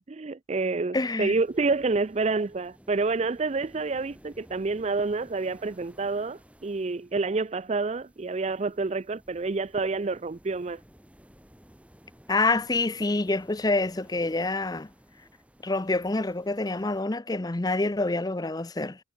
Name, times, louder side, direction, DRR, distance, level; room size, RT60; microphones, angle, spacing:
voice 1, 0.0-10.8, right 3 dB, 30° right, 0.4 m, -28 dB
voice 2, 0.9-1.4 12.3-14.9 15.6-19.0, left 2 dB, 20° left, 0.5 m, -27 dB
sound 1, 1.2-17.0, equal, 5° right, 4.0 m, -56 dB
head